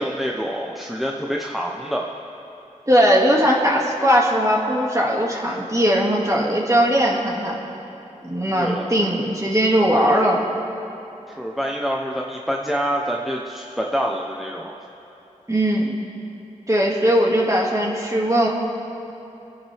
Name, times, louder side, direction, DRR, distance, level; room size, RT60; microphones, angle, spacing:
voice 1, 0.0-2.1 8.6-8.9 11.3-14.8, equal, ahead, -1 dB, 0.9 m, -26 dB
voice 2, 2.9-7.6 8.2-10.5 15.5-15.9 16.7-18.5, equal, 25° right, -2 dB, 2.3 m, -19 dB
26.5 x 10.0 x 3.5 m, 3.0 s
wide cardioid pair, 55°, 13 cm